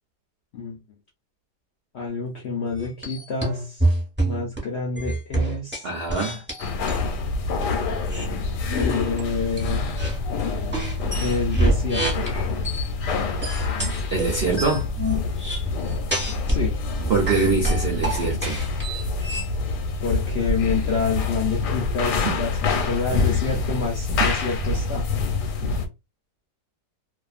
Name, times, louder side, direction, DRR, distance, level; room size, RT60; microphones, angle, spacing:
voice 1, 1.9-3.9 4.2-5.9 8.7-10.0 11.1-12.3 16.5-16.8 20.0-22.5 22.8-25.0, left 4 dB, 65° left, 0.6 m, -28 dB
sound 1, 2.7-4.6 4.9-7.0 8.1-8.3 8.8-9.2 9.6-10.2 10.7-12.9 13.4-16.6 16.9-19.5, right 1 dB, 10° right, 0.8 m, -27 dB
voice 2, 5.8-6.4 14.1-14.9 17.1-18.7 22.2-22.3, right 4 dB, 70° right, 0.5 m, -24 dB
sound 2, 6.6-25.9, left 3 dB, 90° left, 1.2 m, -26 dB
2.5 x 2.4 x 2.4 m
omnidirectional pair, 1.7 m